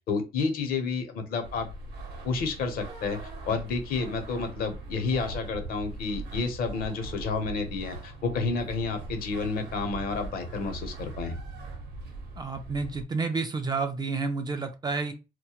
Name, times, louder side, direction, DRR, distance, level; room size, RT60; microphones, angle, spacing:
voice 1, 0.1-1.7 2.2-11.4, left 4 dB, 60° left, 6 dB, 0.7 m, -30 dB
sound 1, 1.4-13.0, right 2 dB, 75° right, 0.8 m, -40 dB
voice 2, 12.4-15.1, right 4 dB, 25° right, 7 dB, 0.3 m, -30 dB
2.2 x 2.1 x 2.8 m, 0.28 s
cardioid pair, 110°, 17 cm